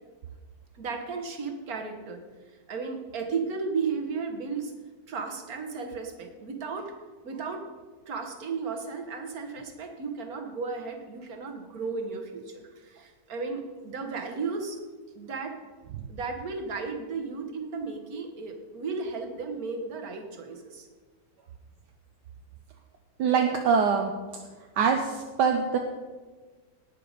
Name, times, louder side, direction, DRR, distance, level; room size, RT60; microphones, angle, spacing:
voice 1, 0.8-2.2 2.7-4.7 5.1-6.9 7.2-7.7 8.1-14.8 15.1-15.6 16.1-20.9, right 4 dB, 55° right, 4 dB, 1.9 m, -34 dB
voice 2, 23.2-24.1 24.8-25.8, right 6 dB, 75° right, 3 dB, 1.4 m, -23 dB
18.5 x 6.8 x 5.1 m, 1.4 s
omnidirectional pair, 1.9 m